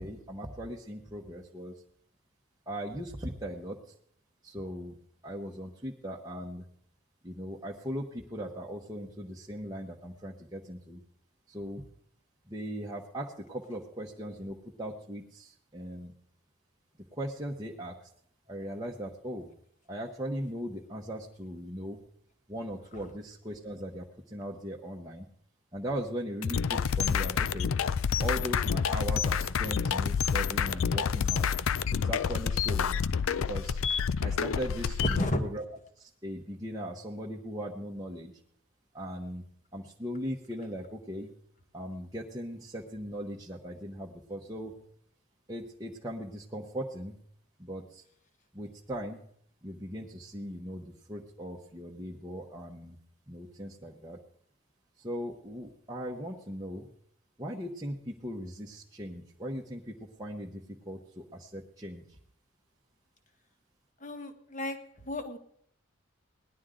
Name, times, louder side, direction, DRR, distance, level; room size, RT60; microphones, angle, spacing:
voice 1, 0.0-1.7 2.7-3.8 4.4-5.0 5.2-6.6 7.2-11.0 11.5-11.8 12.5-16.1 17.1-18.1 18.5-19.5 19.9-22.0 22.5-25.3 25.7-27.7 28.2-31.5 31.9-33.0 33.5-33.8 34.2-35.6 36.0-38.3 38.9-39.4 39.7-41.3 41.7-44.7 45.5-47.2 47.6-48.0 48.5-49.2 49.6-53.0 53.3-54.2 55.0-56.9 57.4-62.2, equal, 20° right, -3 dB, 1.0 m, -39 dB
sound 1, 26.4-35.3, left 7 dB, 80° left, 0.5 m, -28 dB
voice 2, 35.0-35.4 64.0-64.8 65.0-65.4, left 1 dB, 35° left, 7 dB, 1.3 m, -32 dB
18.0 x 11.5 x 3.8 m, 0.64 s
head